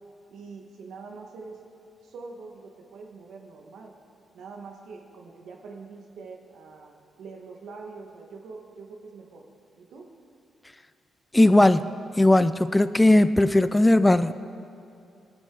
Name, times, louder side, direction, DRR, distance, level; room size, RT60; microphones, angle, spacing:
voice 1, 0.3-1.6 2.0-3.9 4.3-6.9 7.2-9.4 9.8-10.1, right 4 dB, 85° right, 1 dB, 1.7 m, -44 dB
voice 2, 11.3-11.9 12.2-14.3, left 1 dB, 10° left, 13 dB, 0.3 m, -18 dB
19.5 x 9.3 x 4.0 m, 2.6 s
cardioid pair, 110°, 0 cm